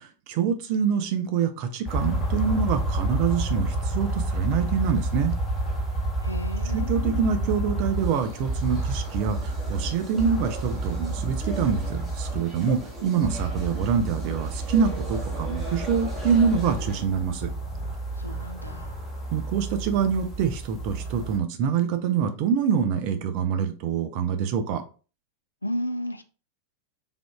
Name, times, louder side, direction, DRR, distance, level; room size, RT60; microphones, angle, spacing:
voice 1, 0.0-5.3 6.7-17.5 19.3-24.8, right 7 dB, 45° right, 7 dB, 0.5 m, -25 dB
sound 1, 1.8-21.4, right 1 dB, 15° left, 0.8 m, -30 dB
voice 2, 6.2-7.2 18.2-19.0 25.6-26.2, left 1 dB, 85° left, 9 dB, 0.3 m, -33 dB
sound 2, 7.9-17.1, right 1 dB, 15° right, 0.9 m, -41 dB
3.4 x 2.4 x 2.2 m, 0.35 s
figure-of-eight pair, 90°, 0 cm